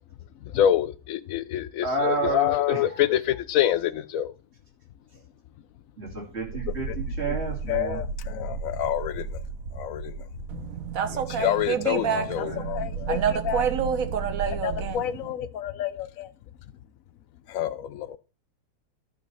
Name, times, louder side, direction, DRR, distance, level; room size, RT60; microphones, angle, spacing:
voice 1, 0.4-4.3 6.7-7.0 7.3-7.4 7.7-9.4 9.7-10.3 10.5-10.7 11.1-13.6 14.5-16.3 17.5-18.2, left 11 dB, 65° left, 0.9 m, -27 dB
voice 2, 1.8-2.8 6.0-8.0 12.0-12.6, right 3 dB, 40° right, 2.9 m, -31 dB
sound 1, 6.1-14.9, right 4 dB, 90° right, 2.0 m, -35 dB
voice 3, 10.5-15.0, right 7 dB, 60° right, 1.3 m, -28 dB
11.5 x 4.2 x 5.4 m
omnidirectional pair, 1.7 m